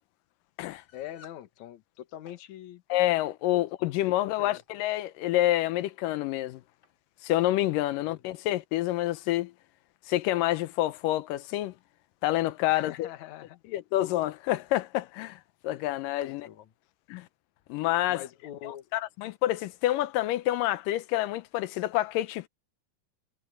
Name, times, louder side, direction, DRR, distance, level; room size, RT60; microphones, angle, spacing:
sound 1, 0.8-1.4 2.1-2.4 3.4-3.6 4.3-4.7 5.5-5.7 6.0-6.1 6.8-7.0, left 4 dB, 35° left, 3.9 m, -58 dB
voice 1, 0.9-2.8 3.5-3.6 4.0-4.6 7.9-8.2 12.7-13.6 16.2-16.7 18.1-18.9, left 12 dB, 65° left, 2.5 m, -44 dB
voice 2, 2.9-6.6 7.2-9.5 10.1-11.7 12.2-13.1 13.7-16.5 17.1-17.3 17.7-18.2 18.6-22.5, left 15 dB, 85° left, 2.5 m, -28 dB
omnidirectional pair, 3.8 m